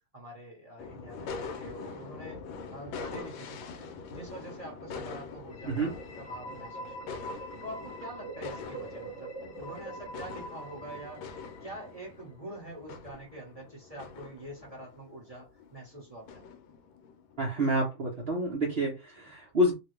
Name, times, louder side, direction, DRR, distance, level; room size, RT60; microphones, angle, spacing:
voice 1, 0.0-2.4 2.7-7.1 7.6-11.3 11.6-16.5 19.1-19.3, right 1 dB, 25° right, 0.8 m, -45 dB
sound 1, 0.8-17.4, left 5 dB, 80° left, 1.4 m, -44 dB
sound 2, 5.5-12.2, right 2 dB, 10° left, 0.7 m, -44 dB
voice 2, 17.4-19.7, equal, 65° right, 0.5 m, -28 dB
3.3 x 2.3 x 3.1 m
omnidirectional pair, 2.3 m